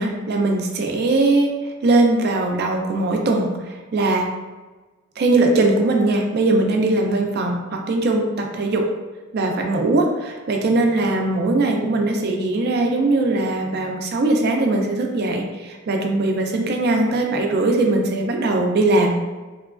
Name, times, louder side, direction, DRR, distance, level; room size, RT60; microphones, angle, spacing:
voice 1, 0.0-1.5 1.8-4.3 5.2-8.8 9.3-19.1, right 2 dB, 50° right, 2 dB, 0.4 m, -20 dB
2.9 x 2.2 x 2.4 m, 1.2 s
head